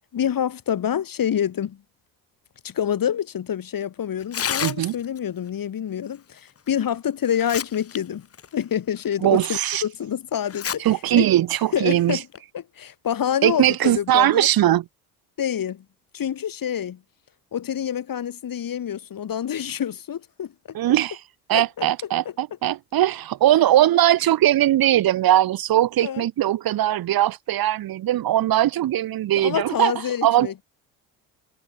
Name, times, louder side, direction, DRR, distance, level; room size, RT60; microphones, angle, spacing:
voice 1, 0.1-1.8 2.6-8.3 8.5-11.3 11.7-12.3 12.5-14.5 15.4-15.8 16.1-17.0 17.5-20.5 21.5-21.9 22.2-22.3 26.0-26.3 29.4-30.6, left 9 dB, 45° left, 4.9 m, -27 dB
Tearing, 4.2-5.2 6.7-6.8 7.2-8.0 8.3-8.5 9.1-9.2 10.5-10.8 11.2-11.3 12.1-12.4, left 8 dB, 30° left, 1.2 m, -29 dB
voice 2, 4.6-4.9 9.2-9.8 10.8-12.2 13.4-14.8 20.7-21.2 21.5-29.9 30.2-30.5, right 13 dB, 50° right, 1.3 m, -20 dB
hypercardioid pair, 65°, 45 cm